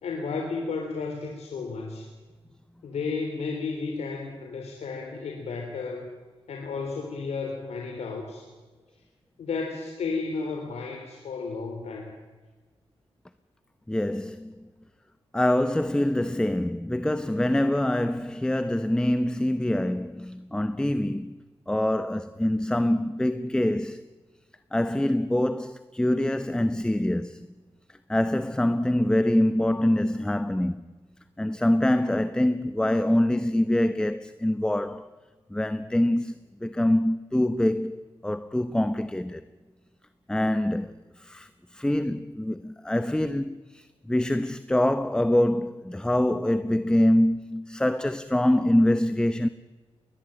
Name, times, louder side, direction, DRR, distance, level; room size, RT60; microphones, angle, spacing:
voice 1, 0.0-2.1 2.8-6.1 6.5-8.5 9.4-12.1, left 4 dB, 85° left, 3.5 m, -33 dB
voice 2, 13.9-14.5 15.3-21.3 21.7-24.0 24.7-27.5 28.1-30.8 31.4-35.1 35.5-36.3 36.6-38.0 38.2-39.4 40.3-40.9 41.2-49.5, left 1 dB, 5° left, 0.8 m, -25 dB
20.5 x 20.5 x 8.9 m
cardioid pair, 90°, 11 cm